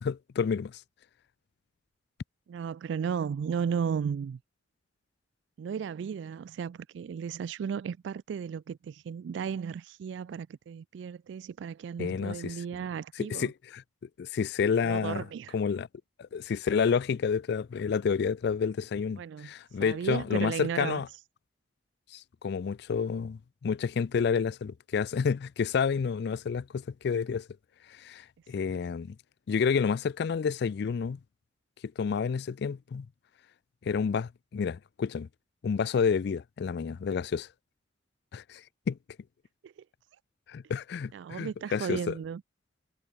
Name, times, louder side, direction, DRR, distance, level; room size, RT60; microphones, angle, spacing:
voice 1, 0.0-0.8 12.0-12.5 13.2-13.8 14.2-15.2 15.5-15.9 16.2-21.1 22.1-27.5 27.9-29.2 29.5-31.2 32.0-33.1 33.8-35.3 35.6-37.5 38.3-39.0 40.5-42.1, left 6 dB, 60° left, 0.4 m, -29 dB
voice 2, 2.5-4.4 5.6-13.5 14.8-15.6 19.2-19.5 19.8-21.0 39.6-39.8 41.1-42.4, right 7 dB, 70° right, 0.3 m, -35 dB
head